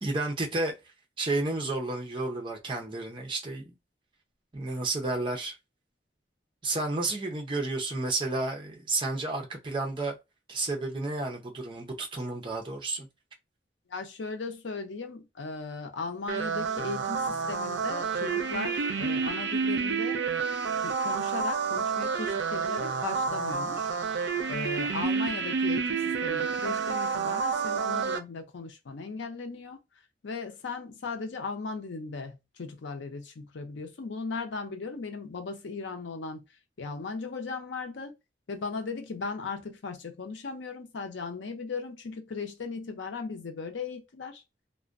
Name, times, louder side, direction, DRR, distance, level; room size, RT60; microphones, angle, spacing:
voice 1, 0.0-0.7 1.2-3.6 4.5-5.5 6.6-10.2 10.5-13.1, right 2 dB, 25° right, 0.5 m, -31 dB
voice 2, 13.9-20.2 20.8-24.0 24.5-29.8 30.2-36.4 36.8-38.1 38.5-44.4, left 4 dB, 85° left, 0.6 m, -37 dB
sound 1, 16.3-28.2, right 5 dB, 80° right, 0.4 m, -29 dB
2.4 x 2.1 x 2.3 m
head